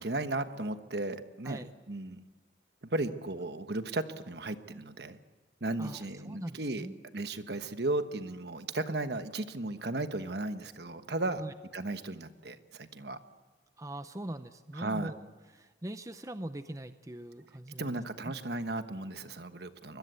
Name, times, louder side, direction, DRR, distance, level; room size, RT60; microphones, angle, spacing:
voice 1, 0.0-1.6 1.9-2.2 2.8-5.2 5.6-6.9 7.1-11.4 11.7-13.2 14.7-15.1 17.8-20.0, right 2 dB, 60° right, 9 dB, 1.3 m, -35 dB
voice 2, 5.8-6.9 11.4-11.5 13.8-15.2 15.5-17.9 18.3-18.4, right 1 dB, 15° right, 10 dB, 0.7 m, -41 dB
25.0 x 21.5 x 8.2 m, 1.3 s
head